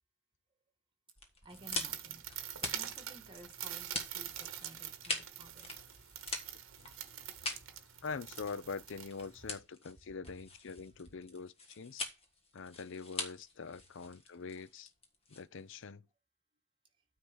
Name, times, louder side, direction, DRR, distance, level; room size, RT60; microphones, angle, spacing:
sound 1, 1.2-15.8, left 3 dB, 25° left, 1.5 m, -44 dB
voice 1, 1.4-2.2 2.6-5.7, right 2 dB, 20° right, 2.1 m, -55 dB
sound 2, 1.5-9.6, right 11 dB, 60° right, 1.1 m, -45 dB
voice 2, 8.0-12.0 12.5-14.9 15.3-16.1, left 5 dB, 55° left, 0.5 m, -44 dB
9.4 x 3.8 x 6.3 m
head